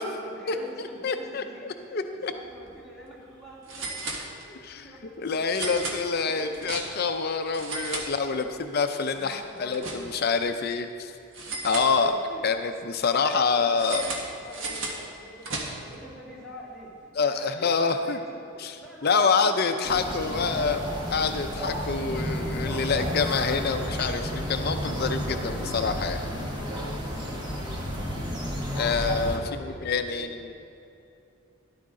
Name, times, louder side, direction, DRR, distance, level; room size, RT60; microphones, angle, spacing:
voice 1, 0.0-6.7 7.9-10.2 12.0-12.4 13.1-20.8 26.3-27.8 28.0-28.3 29.3-30.4, equal, ahead, -8 dB, 2.5 m, -45 dB
voice 2, 1.0-2.3 4.6-4.9 5.2-11.1 11.6-12.2 12.4-14.1 17.1-18.2 18.6-18.7 19.0-20.8 21.1-26.2 28.8-30.5, left 5 dB, 45° left, 7 dB, 0.5 m, -26 dB
sound 1, 2.5-2.7 3.0-3.1 3.7-4.7 5.5-7.2 7.5-8.7 9.0-10.4 11.3-12.4 13.8-16.0, right 2 dB, 60° right, 1.5 m, -36 dB
sound 2, 19.8-29.4, equal, 20° right, 1.3 m, -31 dB
13.0 x 11.5 x 3.7 m, 2.8 s
head